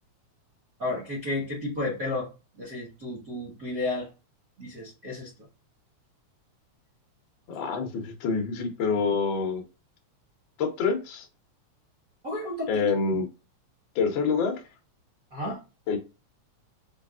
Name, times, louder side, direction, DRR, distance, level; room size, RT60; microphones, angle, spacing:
voice 1, 0.8-2.3 2.6-4.1 4.6-5.3 12.2-12.9 15.3-15.6, left 2 dB, 60° right, 0.8 m, -32 dB
voice 2, 7.5-9.6 10.6-11.3 12.7-13.2 13.9-14.5 15.9-16.0, left 5 dB, 85° left, 1.0 m, -26 dB
5.0 x 2.4 x 2.3 m
omnidirectional pair, 3.3 m